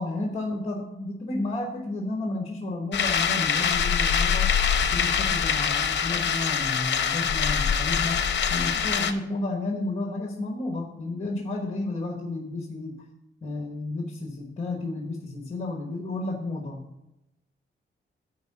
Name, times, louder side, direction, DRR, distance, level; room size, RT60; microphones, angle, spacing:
voice 1, 0.0-4.5 4.8-8.2 8.5-12.9 13.4-16.8, left 2 dB, 30° left, 1 dB, 1.2 m, -32 dB
sound 1, 2.9-9.1, left 7 dB, 60° left, 0.7 m, -24 dB
9.4 x 4.7 x 6.4 m, 0.91 s
wide cardioid pair, 120°, 21 cm